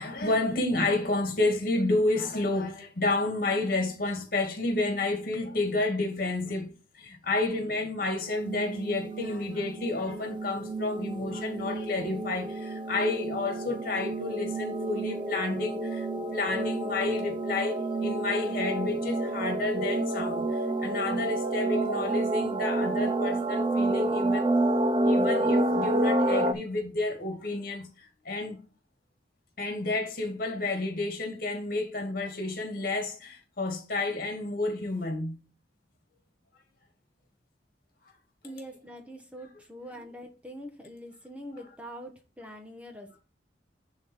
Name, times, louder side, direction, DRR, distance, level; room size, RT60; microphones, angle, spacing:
voice 1, 0.0-24.5 25.0-28.6 29.6-35.3, left 2 dB, 55° left, 2.4 m, -30 dB
sound 1, 8.2-26.5, right 2 dB, 30° right, 0.7 m, -29 dB
voice 2, 38.4-43.2, equal, 10° right, 1.1 m, -44 dB
10.5 x 3.9 x 4.6 m
head